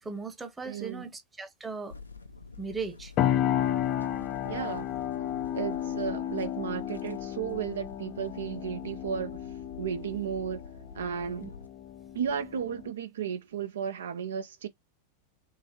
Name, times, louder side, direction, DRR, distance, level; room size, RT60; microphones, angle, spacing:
voice 1, 0.0-2.0 2.6-3.1 11.4-11.5, right 4 dB, 10° right, 0.8 m, -38 dB
voice 2, 0.6-1.1 4.4-4.9 5.5-9.4 9.8-10.6 10.9-11.5 12.1-14.7, right 8 dB, 65° right, 0.4 m, -34 dB
sound 1, 1.9-11.7, left 4 dB, 80° left, 0.6 m, -48 dB
sound 2, 3.2-12.9, left 11 dB, 35° left, 0.4 m, -33 dB
3.8 x 3.3 x 2.9 m
figure-of-eight pair, 90°, 0 cm